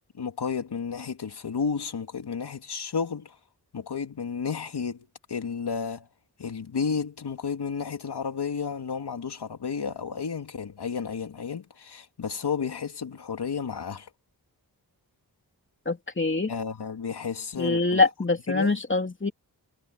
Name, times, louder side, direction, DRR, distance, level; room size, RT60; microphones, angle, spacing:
voice 1, 0.1-3.4 3.7-6.1 6.4-14.1 16.5-18.1 18.5-18.8, left 6 dB, 90° left, 2.7 m, -32 dB
voice 2, 15.8-16.5 17.6-19.3, left 3 dB, 30° left, 3.0 m, -24 dB
wide cardioid pair, 105°, 39 cm